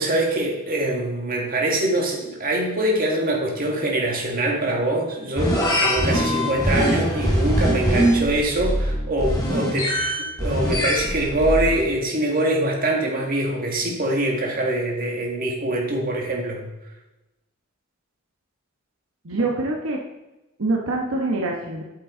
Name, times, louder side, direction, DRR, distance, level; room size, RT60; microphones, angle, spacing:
voice 1, 0.0-10.0 10.4-16.6, right 1 dB, 45° right, 0 dB, 1.9 m, -24 dB
sound 1, 5.4-11.8, equal, 20° left, 2.4 m, -22 dB
voice 2, 19.2-20.0 20.6-21.8, right 2 dB, 75° right, -1 dB, 1.2 m, -24 dB
8.6 x 7.7 x 3.9 m, 1.0 s
head